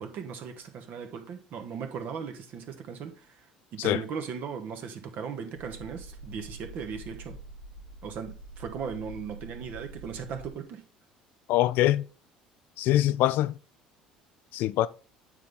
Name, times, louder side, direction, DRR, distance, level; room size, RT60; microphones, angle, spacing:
voice 1, 0.0-3.4 3.7-7.4 8.0-10.8, right 6 dB, 55° right, 1.3 m, -38 dB
sound 1, 5.5-10.5, right 3 dB, 90° left, 1.0 m, -45 dB
voice 2, 11.5-12.1 12.8-13.5 14.5-14.9, left 14 dB, 60° left, 0.4 m, -23 dB
9.1 x 3.9 x 3.4 m
figure-of-eight pair, 60°, 4 cm